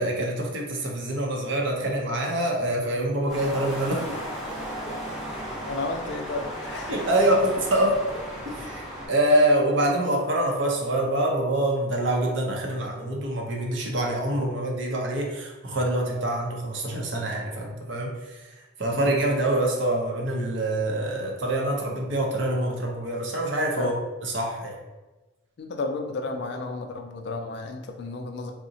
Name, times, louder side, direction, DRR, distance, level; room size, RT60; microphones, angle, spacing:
voice 1, 0.0-4.0 6.9-8.2 8.6-23.9 24.2-24.8, right 1 dB, 60° right, 0 dB, 0.6 m, -25 dB
sound 1, 3.3-9.1, equal, ahead, 0.7 m, -35 dB
voice 2, 5.7-7.1 18.9-19.2 23.8-23.9 25.6-28.5, left 3 dB, 55° left, 4 dB, 0.3 m, -32 dB
3.6 x 2.0 x 2.7 m, 1.2 s
head